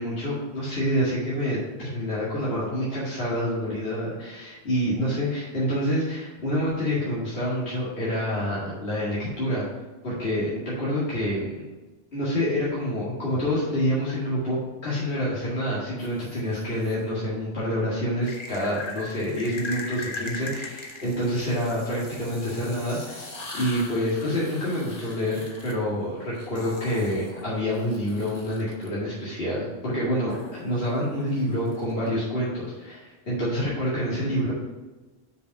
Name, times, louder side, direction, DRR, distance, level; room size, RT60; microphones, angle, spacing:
voice 1, 0.0-9.7 10.0-11.7 12.1-34.5, equal, 60° left, -9 dB, 2.2 m, -27 dB
sound 1, 16.0-16.9 18.2-28.9 30.3-32.1, left 2 dB, 40° left, 1.2 m, -40 dB
6.8 x 5.1 x 5.8 m, 1.2 s
omnidirectional pair, 1.1 m